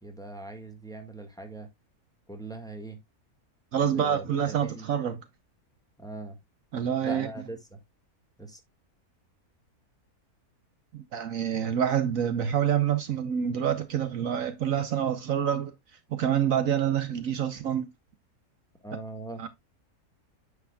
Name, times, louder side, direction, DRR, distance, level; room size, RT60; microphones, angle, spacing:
voice 1, 0.0-1.7 2.3-3.0 3.8-4.9 6.0-6.4 7.0-7.8 8.4-8.6 18.8-19.4, right 2 dB, 5° left, 1.6 m, -41 dB
voice 2, 3.7-5.2 6.7-7.3 10.9-15.7 16.1-17.9 19.4-19.5, right 9 dB, 65° right, 1.2 m, -27 dB
9.5 x 6.0 x 2.3 m
omnidirectional pair, 1.6 m